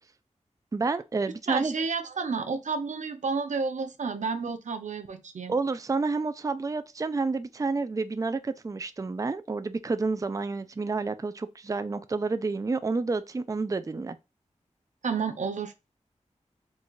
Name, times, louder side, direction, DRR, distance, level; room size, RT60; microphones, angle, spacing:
voice 1, 0.7-1.7 5.5-14.2, right 3 dB, 25° right, 0.4 m, -29 dB
voice 2, 1.5-5.5 15.0-15.7, right 5 dB, 90° right, 0.7 m, -31 dB
3.9 x 2.4 x 4.5 m
wide cardioid pair, 60°, 12 cm